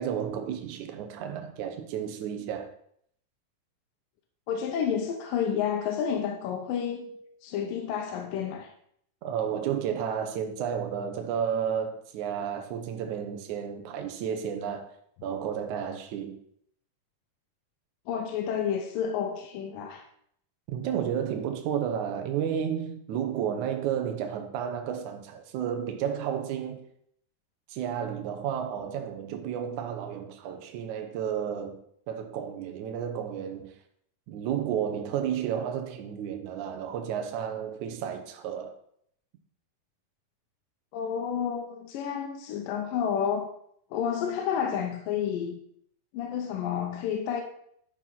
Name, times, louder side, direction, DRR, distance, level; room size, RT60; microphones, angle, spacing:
voice 1, 0.0-2.7 9.2-14.9 15.2-16.4 20.7-26.8 27.7-31.8 32.1-33.8 34.3-38.7, right 8 dB, 70° right, 2.1 m, -32 dB
voice 2, 4.5-7.1 7.4-8.7 18.1-20.0 40.9-43.5 43.9-45.6 46.1-47.4, left 8 dB, 80° left, 2.4 m, -30 dB
11.5 x 4.4 x 5.8 m
omnidirectional pair, 4.0 m